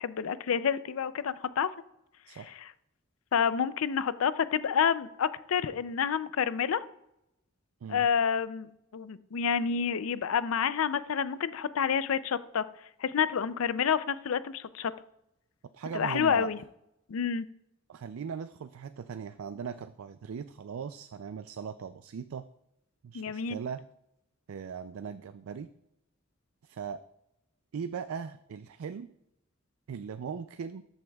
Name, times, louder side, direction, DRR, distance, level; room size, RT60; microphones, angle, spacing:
voice 1, 0.0-1.7 2.6-2.7 3.3-6.8 7.9-12.6 13.0-14.9 15.9-16.6 17.1-17.5 23.1-23.6, left 7 dB, 85° left, 15 dB, 0.4 m, -29 dB
voice 2, 15.7-16.5 17.9-22.5 23.0-23.8 24.5-25.7 26.6-27.0 27.7-29.1 29.9-30.8, right 6 dB, 85° right, 12 dB, 0.4 m, -39 dB
13.5 x 7.9 x 2.3 m, 0.83 s
head